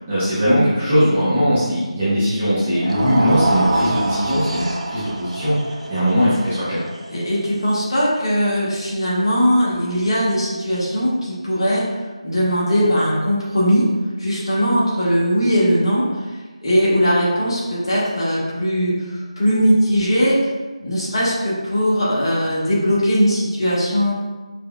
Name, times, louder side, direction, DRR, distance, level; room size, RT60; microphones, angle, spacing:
voice 1, 0.1-5.6 5.9-6.8, equal, 10° right, -14 dB, 0.6 m, -19 dB
sound 1, 2.7-9.0, right 1 dB, 70° right, 0.6 m, -26 dB
voice 2, 7.1-11.8 12.2-13.9 14.2-16.2 16.6-20.4 20.8-24.1, equal, 50° left, -7 dB, 1.4 m, -19 dB
5.5 x 2.5 x 2.2 m, 1.2 s
figure-of-eight pair, 175°, 4 cm